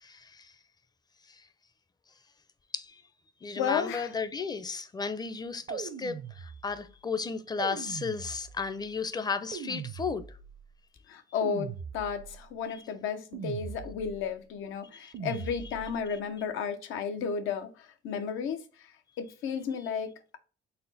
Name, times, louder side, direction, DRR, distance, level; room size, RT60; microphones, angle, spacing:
voice 1, 0.0-0.5 1.3-1.4 2.7-3.0 3.4-10.4 12.7-12.8 14.9-15.1, left 5 dB, 20° left, 0.5 m, -34 dB
voice 2, 3.6-4.1 11.1-18.9 19.2-20.4, left 6 dB, 85° left, 0.7 m, -33 dB
sound 1, 5.7-6.9 7.6-8.8 9.5-10.6 11.4-12.4 13.3-14.3 15.1-16.0, right 7 dB, 55° right, 0.6 m, -40 dB
4.1 x 2.1 x 4.0 m
cardioid pair, 90°, 20 cm